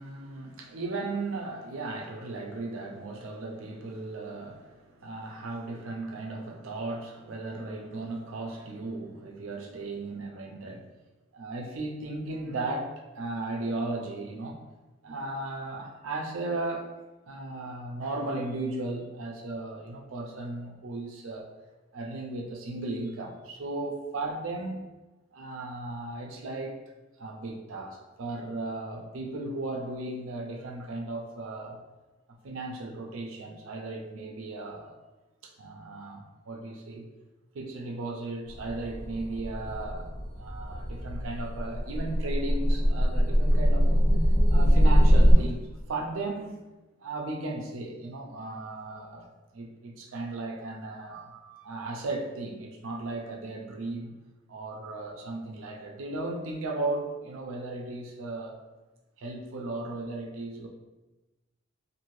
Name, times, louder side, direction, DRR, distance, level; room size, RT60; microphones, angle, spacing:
voice 1, 0.0-10.9 11.3-14.6 15.0-17.0 17.3-21.5 21.9-24.8 25.3-26.8 27.2-31.8 32.4-35.0 35.4-37.1 37.5-44.0 44.5-46.6 47.0-49.3 49.5-54.1 54.5-58.6 59.2-60.7, right 2 dB, 70° right, 1 dB, 0.5 m, -36 dB
sound 1, 38.5-45.3, equal, 15° right, 1.3 m, -23 dB
2.6 x 2.6 x 3.1 m, 1.1 s
head